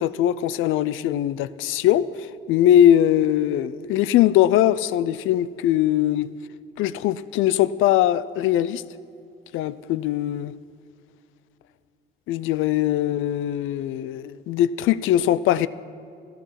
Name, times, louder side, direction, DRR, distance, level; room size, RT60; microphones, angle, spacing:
voice 1, 0.0-6.3 6.8-8.8 9.5-10.5 12.3-15.7, left 12 dB, 90° left, 0.5 m, -21 dB
13.0 x 12.5 x 5.8 m
cardioid pair, 90°, 20 cm